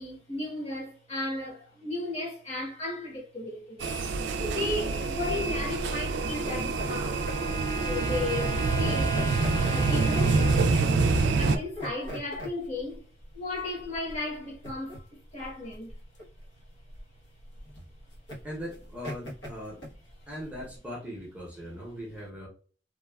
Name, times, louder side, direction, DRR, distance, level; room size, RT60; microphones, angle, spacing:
voice 1, 0.0-3.9 4.4-7.2 7.8-9.2 9.7-13.0 13.3-15.0 15.3-15.9, left 2 dB, 35° left, 1.0 m, -35 dB
sound 1, 3.8-11.6, right 3 dB, 75° right, 0.3 m, -26 dB
sound 2, 4.6-20.8, equal, 80° left, 1.0 m, -41 dB
Trumpet, 6.2-10.7, left 1 dB, 20° left, 0.3 m, -39 dB
voice 2, 18.4-19.8 20.3-22.5, equal, 10° right, 0.7 m, -39 dB
3.1 x 2.2 x 2.2 m
head